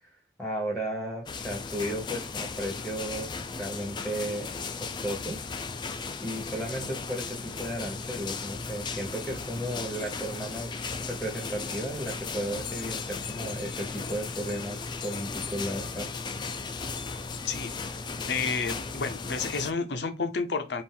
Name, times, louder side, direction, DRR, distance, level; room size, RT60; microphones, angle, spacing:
voice 1, 0.4-4.5 4.8-5.4 6.2-16.1, right 1 dB, ahead, 1.0 m, -34 dB
sound 1, 1.3-19.7, left 4 dB, 25° left, 0.4 m, -36 dB
voice 2, 18.3-20.8, left 4 dB, 75° left, 0.7 m, -30 dB
4.3 x 2.5 x 3.7 m
head